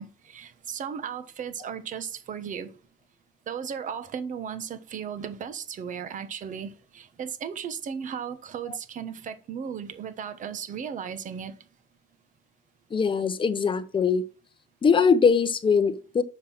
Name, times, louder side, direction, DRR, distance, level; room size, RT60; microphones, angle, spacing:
voice 1, 0.0-2.7 3.5-11.6, right 7 dB, 50° right, 1.1 m, -36 dB
voice 2, 12.9-14.2 14.8-16.2, left 5 dB, 30° left, 0.9 m, -22 dB
6.5 x 5.5 x 6.0 m
cardioid pair, 110°, 17 cm